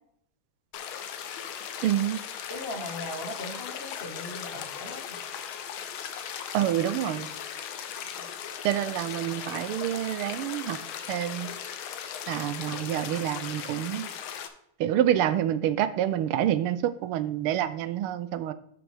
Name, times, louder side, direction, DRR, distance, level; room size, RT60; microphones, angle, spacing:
sound 1, 0.7-14.5, left 8 dB, 75° left, 1.6 m, -38 dB
voice 1, 1.8-2.2 6.5-7.3 8.6-10.8 11.1-11.5 12.3-14.1 14.8-18.5, right 11 dB, 85° right, 13 dB, 1.5 m, -27 dB
voice 2, 2.5-5.2 8.0-8.3, left 1 dB, 30° left, 1 dB, 1.5 m, -39 dB
11.0 x 6.1 x 3.4 m, 0.72 s
omnidirectional pair, 2.4 m